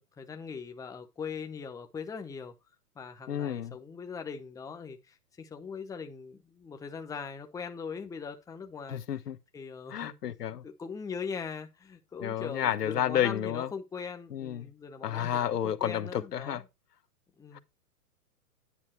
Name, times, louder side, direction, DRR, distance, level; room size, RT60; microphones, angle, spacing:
voice 1, 0.0-2.5 2.9-9.0 9.5-10.2 10.6-16.6 17.4-17.6, left 5 dB, 5° left, 0.9 m, -41 dB
voice 2, 3.3-3.8 8.9-9.4 9.9-10.6 12.2-13.7 14.3-14.7 15.0-16.6 17.5-17.6, left 10 dB, 90° left, 1.1 m, -31 dB
10.0 x 6.1 x 4.4 m
hypercardioid pair, 135°, 46 cm